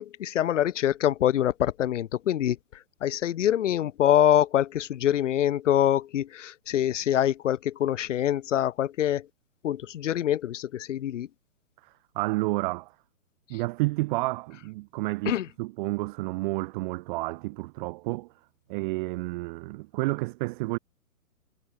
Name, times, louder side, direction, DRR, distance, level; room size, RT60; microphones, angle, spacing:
voice 1, 0.0-2.6 3.0-9.2 9.6-11.3 15.3-15.4, left 11 dB, 55° left, 1.2 m, -25 dB
voice 2, 11.8-12.9 13.5-18.3 18.7-20.8, right 22 dB, 35° right, 4.1 m, -30 dB
hypercardioid pair, 155°, 44 cm